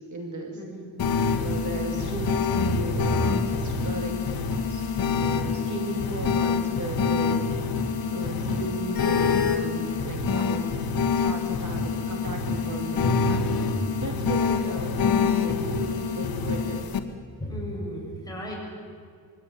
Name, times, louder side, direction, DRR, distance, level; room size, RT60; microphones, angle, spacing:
voice 1, 0.0-0.6 1.3-7.7 8.1-10.7 11.0-13.5 14.0-16.8, right 2 dB, 45° right, 3 dB, 2.6 m, -35 dB
voice 2, 0.5-1.2 14.6-14.8 17.4-18.5, equal, 10° left, -3 dB, 7.9 m, -36 dB
sound 1, 1.0-17.0, left 5 dB, 60° left, 1.9 m, -26 dB
23.0 x 17.0 x 9.3 m, 2.2 s
cardioid pair, 115°, 41 cm